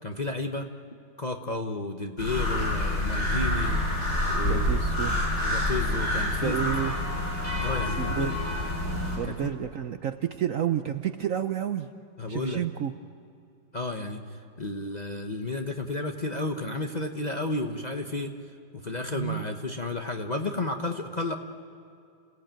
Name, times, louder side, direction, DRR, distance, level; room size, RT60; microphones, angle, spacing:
voice 1, 0.0-0.7 1.2-3.9 4.3-4.7 5.4-6.7 7.6-8.3 9.2-9.3 12.2-12.6 13.7-14.2 14.6-18.3 18.7-21.3, left 2 dB, 30° left, 4 dB, 0.9 m, -32 dB
sound 1, 2.2-9.2, left 1 dB, 50° left, 7.4 m, -27 dB
voice 2, 4.4-5.2 6.4-6.9 8.0-8.4 9.2-11.9 12.3-12.9 19.1-19.4, right 10 dB, 60° right, 9 dB, 0.9 m, -30 dB
28.0 x 17.0 x 9.0 m, 2.5 s
omnidirectional pair, 2.0 m